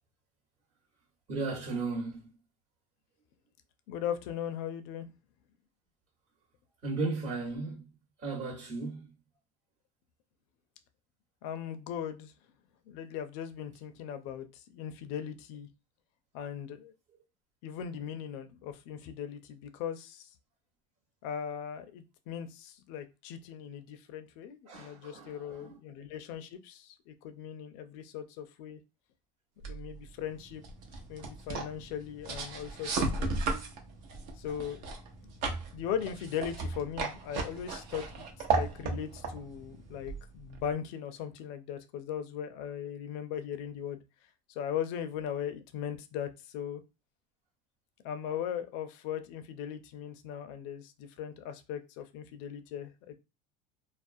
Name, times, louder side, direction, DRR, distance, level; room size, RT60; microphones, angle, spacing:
voice 1, 1.3-2.3 6.8-7.9 8.2-9.0 24.7-25.8, right 3 dB, 50° right, 1.1 m, -35 dB
voice 2, 3.9-5.1 11.4-12.3 12.9-15.7 16.3-16.9 17.6-20.3 21.2-28.8 29.7-30.6 31.1-33.5 34.4-34.8 35.2-35.3 35.7-38.3 38.5-44.0 44.6-46.8 48.0-53.1, left 9 dB, 75° left, 0.4 m, -39 dB
sound 1, 29.6-40.7, right 3 dB, 65° right, 0.7 m, -36 dB
2.4 x 2.0 x 2.6 m
supercardioid pair, 110°, 16 cm